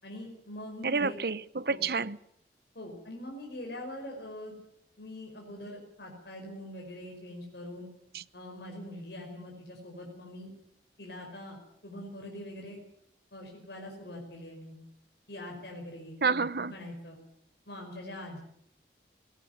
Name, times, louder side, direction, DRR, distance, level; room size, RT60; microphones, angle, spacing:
voice 1, 0.0-1.2 1.7-1.8 2.8-4.6 5.0-7.9 8.3-10.5 11.0-12.8 13.3-14.8 15.3-16.2 16.7-17.2 17.7-18.4, left 1 dB, 70° left, 5.3 m, -43 dB
voice 2, 0.8-2.2 8.1-8.2 16.2-16.7, right 4 dB, 60° right, 0.8 m, -29 dB
19.0 x 18.0 x 9.4 m
head